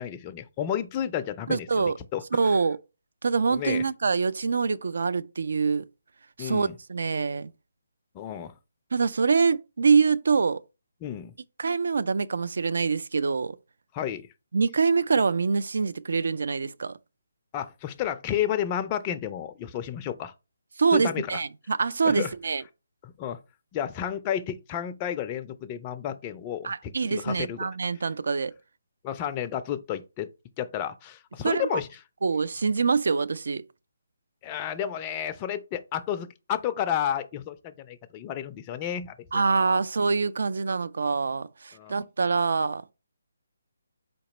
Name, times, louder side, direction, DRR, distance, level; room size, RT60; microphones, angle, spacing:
voice 1, 0.0-2.2 3.5-3.8 6.4-6.8 8.1-8.5 11.0-11.3 13.9-14.3 17.5-20.3 20.9-21.4 22.0-22.3 23.0-23.4 23.7-27.6 29.0-30.3 30.6-31.9 34.4-39.4 41.7-42.0, left 10 dB, 25° left, 0.3 m, -31 dB
voice 2, 1.5-1.9 2.3-2.8 3.2-5.8 6.4-7.5 8.9-10.6 11.6-13.6 14.5-17.0 20.8-22.6 26.6-28.5 31.4-31.8 32.2-33.6 39.3-42.8, right 5 dB, 70° right, 0.3 m, -25 dB
4.3 x 2.9 x 4.1 m
figure-of-eight pair, 155°, 0 cm